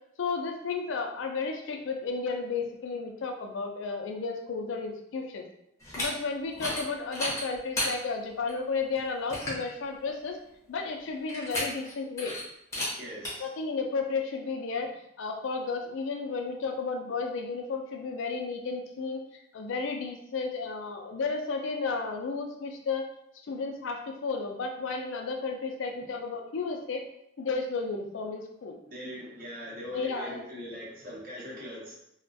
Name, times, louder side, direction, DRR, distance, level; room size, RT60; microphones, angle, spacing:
voice 1, 0.2-5.4 6.0-10.4 10.7-12.4 13.4-14.9 15.2-19.2 19.5-23.0 23.5-27.0 27.4-28.8 29.9-30.4, left 4 dB, 65° left, 3 dB, 0.4 m, -33 dB
sound 1, 5.8-6.1 6.5-6.8 7.1-7.9 8.5-8.6 9.0-9.1 9.3-9.6 11.3-11.9 12.2-12.4 12.7-12.9 13.2-13.3, left 1 dB, 15° left, 0.6 m, -32 dB
voice 2, 13.0-13.5 28.9-31.9, equal, 45° right, -4 dB, 0.7 m, -41 dB
2.3 x 2.2 x 2.6 m, 0.78 s
head